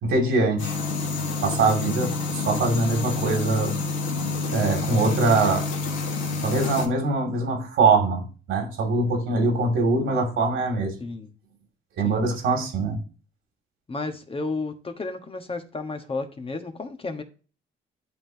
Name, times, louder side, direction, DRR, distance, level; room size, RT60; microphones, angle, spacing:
voice 1, 0.0-0.8 1.4-3.7 4.5-5.6 6.4-8.2 8.5-10.9 12.0-13.0, right 3 dB, 85° right, 2.3 m, -23 dB
sound 1, 0.6-6.9, left 3 dB, 75° left, 1.7 m, -28 dB
voice 2, 11.0-11.3 12.0-12.2 13.9-17.2, left 3 dB, 30° left, 1.2 m, -32 dB
11.0 x 3.8 x 2.7 m
cardioid pair, 90°, 20 cm